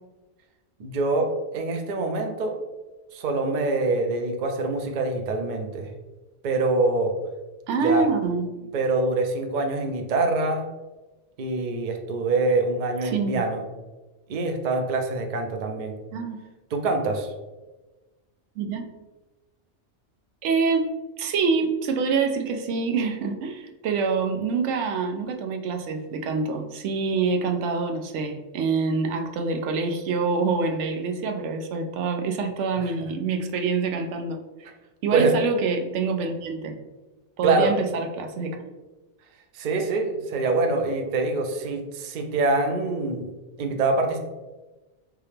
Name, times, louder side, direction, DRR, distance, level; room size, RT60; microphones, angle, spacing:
voice 1, 0.8-2.6 3.1-5.9 6.4-7.1 7.8-8.1 8.7-10.6 11.4-13.6 14.3-15.9 16.7-17.3 32.9-33.0 35.1-35.3 37.4-37.7 39.5-43.3 43.6-44.2, right 3 dB, 50° right, 4 dB, 0.6 m, -25 dB
voice 2, 7.7-8.5 13.0-13.4 16.1-16.4 18.6-18.9 20.4-20.9 21.2-34.4 35.0-36.7 37.4-38.6, right 4 dB, 85° right, 4 dB, 0.9 m, -26 dB
4.7 x 2.8 x 3.4 m, 1.1 s
omnidirectional pair, 1.2 m